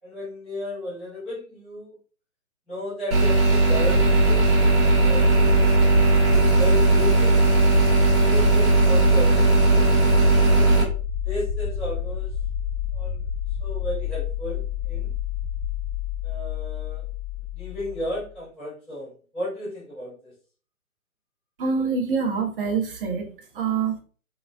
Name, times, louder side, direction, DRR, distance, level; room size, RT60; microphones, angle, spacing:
voice 1, 0.0-2.0 2.7-5.7 6.5-9.9 10.3-10.7 11.2-12.3 12.9-13.3 13.6-15.2 16.2-17.0 17.5-20.3, left 1 dB, ahead, -15 dB, 0.5 m, -34 dB
sound 1, 3.1-10.8, right 3 dB, 15° right, 1.1 m, -18 dB
sound 2, 3.5-18.3, left 7 dB, 50° left, 0.8 m, -29 dB
voice 2, 21.6-24.0, right 5 dB, 40° right, 2 dB, 0.9 m, -26 dB
3.9 x 2.1 x 2.4 m, 0.40 s
figure-of-eight pair, 135°, 43 cm